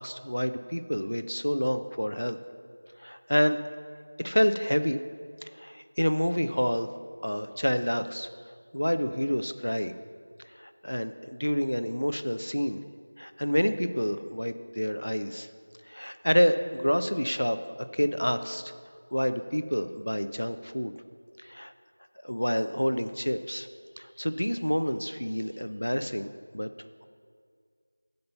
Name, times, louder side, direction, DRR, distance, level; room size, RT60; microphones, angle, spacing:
voice 1, 0.0-2.4 3.0-3.6 4.2-5.0 5.4-6.9 7.2-8.3 8.7-9.9 10.6-12.8 13.2-15.5 15.9-17.6 17.9-18.7 19.1-20.9 21.4-21.7 22.2-23.7 24.0-26.3 26.5-26.7, equal, 85° left, 10 dB, 0.6 m, -28 dB
11.0 x 5.4 x 6.9 m, 2.1 s
figure-of-eight pair, 175°, 0 cm